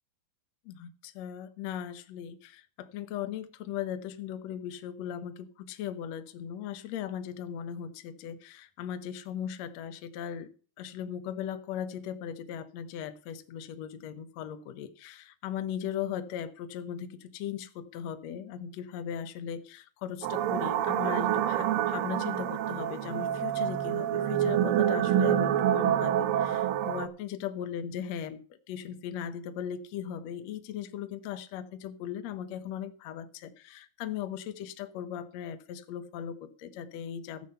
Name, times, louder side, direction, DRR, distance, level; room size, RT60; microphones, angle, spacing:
voice 1, 0.7-10.5 10.8-37.5, left 9 dB, 70° left, 1.7 m, -38 dB
sound 1, 20.2-27.1, right 11 dB, 75° right, 2.6 m, -27 dB
14.5 x 8.1 x 5.6 m
omnidirectional pair, 4.2 m